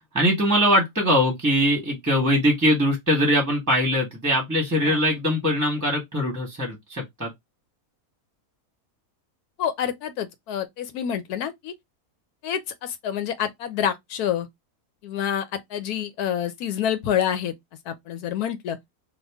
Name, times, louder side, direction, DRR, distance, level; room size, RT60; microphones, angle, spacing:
voice 1, 0.1-7.3, equal, 15° right, 1.0 m, -22 dB
voice 2, 9.6-11.7 12.4-14.5 15.0-15.4 15.7-17.5 17.9-18.8, left 9 dB, 85° left, 1.2 m, -27 dB
2.9 x 2.4 x 3.4 m
omnidirectional pair, 1.6 m